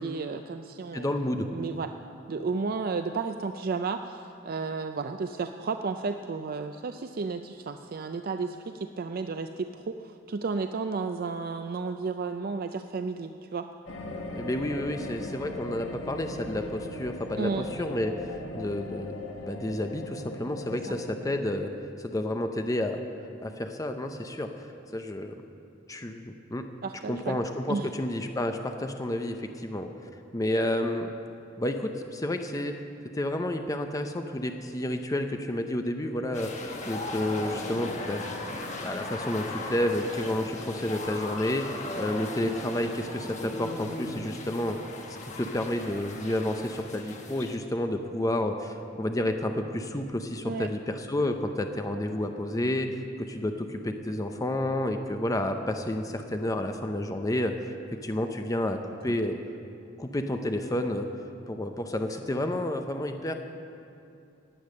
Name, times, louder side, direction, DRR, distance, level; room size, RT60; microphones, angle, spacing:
voice 1, 0.0-1.1 1.5-1.9 2.3-13.7 17.3-17.7 20.9-21.0 26.8-27.4 27.7-27.9 50.4-50.7, right 4 dB, 50° right, 7 dB, 0.4 m, -32 dB
voice 2, 0.9-1.5 14.3-18.3 18.5-21.7 22.0-23.0 23.4-24.5 24.9-25.3 25.9-26.6 27.1-29.9 30.3-31.1 31.6-32.8 33.1-36.5 36.9-38.2 38.8-44.8 45.2-52.9 53.2-57.7 58.0-59.3 60.0-61.1 61.5-63.3, left 1 dB, 20° left, 6 dB, 0.6 m, -30 dB
sound 1, 13.9-21.4, left 2 dB, 85° left, 1.5 m, -39 dB
sound 2, 36.3-47.6, left 2 dB, 40° left, 1.3 m, -37 dB
18.0 x 8.6 x 6.4 m, 2.7 s
head